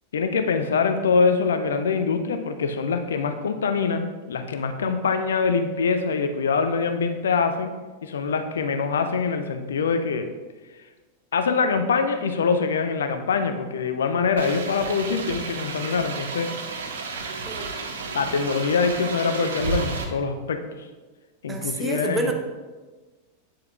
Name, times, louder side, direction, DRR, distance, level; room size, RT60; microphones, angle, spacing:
voice 1, 0.1-7.7 8.0-10.3 11.3-16.5 18.1-20.9 21.4-22.3, left 5 dB, 65° left, 8 dB, 0.5 m, -24 dB
sound 1, 14.4-20.0, right 4 dB, 65° right, 0.8 m, -32 dB
voice 2, 21.5-22.3, right 2 dB, 15° right, 3 dB, 0.9 m, -28 dB
8.6 x 7.5 x 2.5 m, 1.3 s
figure-of-eight pair, 90°, 0 cm